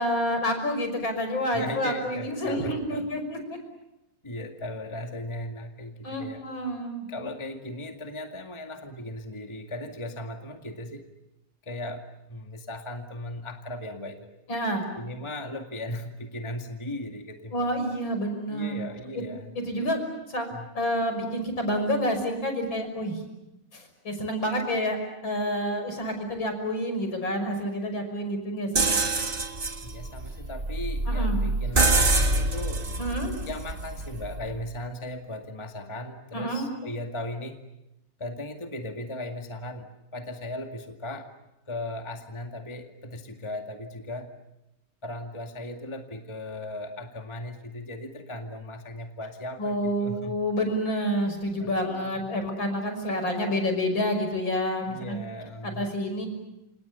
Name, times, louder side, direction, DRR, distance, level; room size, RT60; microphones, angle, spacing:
voice 1, 0.0-3.4 6.0-7.1 14.5-14.9 17.5-18.8 19.1-19.2 19.5-20.0 20.3-20.5 20.7-23.2 23.7-29.0 31.1-31.4 33.0-33.3 36.3-36.7 49.6-55.2 55.6-56.3, equal, 65° left, 6 dB, 6.6 m, -28 dB
voice 2, 1.5-3.1 4.2-6.4 7.1-11.0 11.6-14.3 15.0-17.7 18.5-19.9 20.5-20.7 29.8-32.9 33.4-37.6 38.2-41.3 41.7-44.3 45.0-50.4 51.6-52.2 54.9-55.9, left 1 dB, 15° left, 4 dB, 2.0 m, -37 dB
sound 1, 28.8-34.6, right 2 dB, 25° right, 1.8 m, -26 dB
30.0 x 27.5 x 6.9 m, 0.92 s
omnidirectional pair, 2.3 m